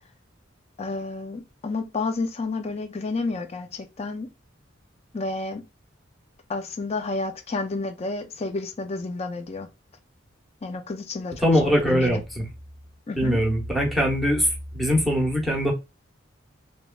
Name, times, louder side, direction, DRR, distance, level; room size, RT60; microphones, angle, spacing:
voice 1, 0.8-4.3 5.1-5.6 6.5-9.7 10.6-12.2 13.1-13.4, left 3 dB, 35° left, 0.5 m, -30 dB
voice 2, 11.4-12.4 13.2-15.7, equal, ahead, 0.9 m, -22 dB
3.1 x 2.2 x 2.3 m
head